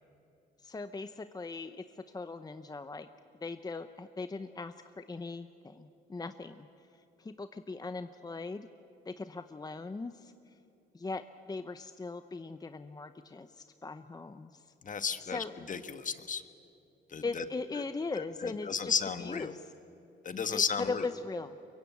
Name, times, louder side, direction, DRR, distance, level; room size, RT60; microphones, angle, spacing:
voice 1, 0.6-3.1 3.4-6.7 6.9-8.7 9.1-10.5 10.9-14.7 15.2-15.5 17.2-19.7 20.5-21.6, left 3 dB, 20° left, 10 dB, 0.7 m, -40 dB
voice 2, 14.8-16.5 17.1-17.4 18.1-19.5 20.2-21.0, left 6 dB, 40° left, 11 dB, 1.4 m, -34 dB
23.5 x 22.5 x 8.4 m, 2.9 s
cardioid pair, 90°, 20 cm